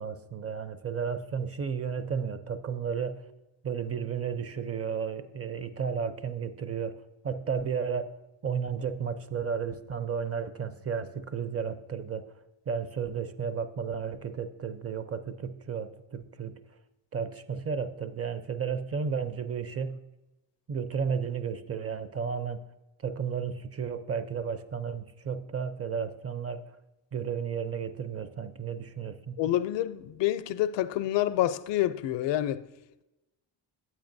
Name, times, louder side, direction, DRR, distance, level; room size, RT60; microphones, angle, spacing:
voice 1, 0.0-3.2 3.6-6.9 7.2-8.1 8.4-12.3 12.7-16.6 17.1-20.0 20.7-22.6 23.0-26.6 27.1-29.4, right 6 dB, 30° right, 0.5 m, -33 dB
voice 2, 29.4-32.6, left 13 dB, 60° left, 0.5 m, -28 dB
8.7 x 8.5 x 2.6 m
supercardioid pair, 60°, 50 cm